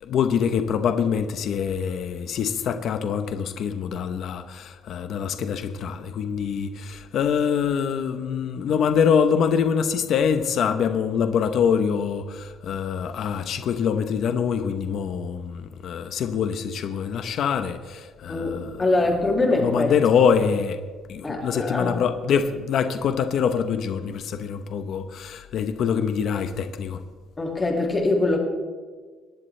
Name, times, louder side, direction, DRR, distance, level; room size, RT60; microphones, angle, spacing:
voice 1, 0.0-18.9 19.6-20.8 21.1-27.0, left 7 dB, 55° left, 0.9 m, -24 dB
voice 2, 18.3-19.9 21.2-22.0 27.4-28.4, left 2 dB, 15° left, 2.3 m, -23 dB
26.0 x 10.5 x 3.3 m
cardioid pair, 160°, 0 cm